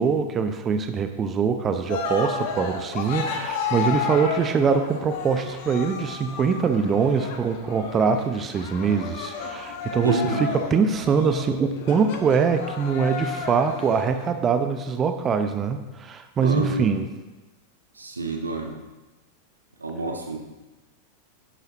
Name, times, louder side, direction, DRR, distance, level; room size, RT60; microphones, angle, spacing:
voice 1, 0.0-17.1, right 5 dB, 25° right, 8 dB, 0.8 m, -23 dB
Cheering, 1.9-14.3, left 5 dB, 50° left, 1.4 m, -32 dB
voice 2, 10.0-10.5 16.4-16.9 18.0-18.7 19.8-20.4, right 2 dB, 80° right, 3 dB, 1.3 m, -27 dB
11.0 x 10.0 x 3.0 m, 1.1 s
figure-of-eight pair, 90°, 0 cm